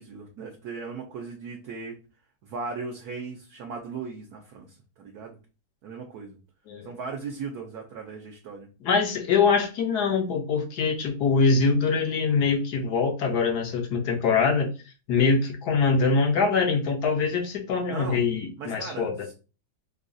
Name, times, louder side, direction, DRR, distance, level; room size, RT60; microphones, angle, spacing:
voice 1, 0.0-2.0 2.4-5.4 5.8-6.4 6.8-8.7 17.9-18.2 18.6-19.3, right 4 dB, 65° right, 1 dB, 1.0 m, -37 dB
voice 2, 8.8-14.7 15.1-19.1, left 4 dB, 65° left, 3 dB, 1.2 m, -23 dB
4.7 x 2.3 x 2.5 m, 0.32 s
omnidirectional pair, 2.0 m